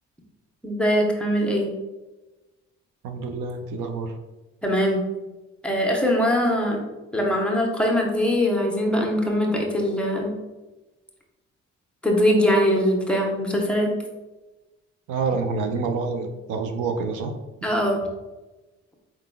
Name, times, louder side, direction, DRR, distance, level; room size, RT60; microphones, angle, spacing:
voice 1, 0.6-1.7 4.6-5.0 5.6-6.8 7.1-10.3 12.0-13.9 17.6-18.0, equal, 5° left, -1 dB, 0.8 m, -22 dB
voice 2, 3.0-4.1 15.1-17.3, right 4 dB, 85° right, 6 dB, 0.6 m, -27 dB
4.5 x 3.8 x 2.2 m, 1.1 s
cardioid pair, 90°, 30 cm